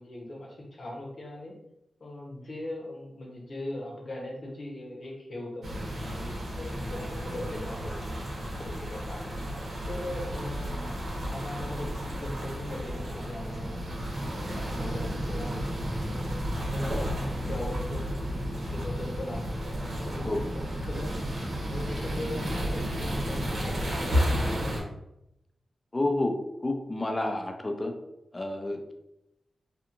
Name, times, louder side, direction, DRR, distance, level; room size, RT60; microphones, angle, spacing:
voice 1, 0.0-1.6 2.0-9.4 9.9-10.7 11.1-15.6 16.0-21.1 21.7-24.9, left 1 dB, 65° left, -3 dB, 0.9 m, -40 dB
sound 1, 5.6-24.8, equal, 75° right, 0.9 m, -32 dB
voice 2, 25.9-26.3 26.6-27.9 28.3-28.9, left 2 dB, 25° left, 4 dB, 0.4 m, -29 dB
2.8 x 2.4 x 2.5 m, 0.84 s
wide cardioid pair, 75°, 0 cm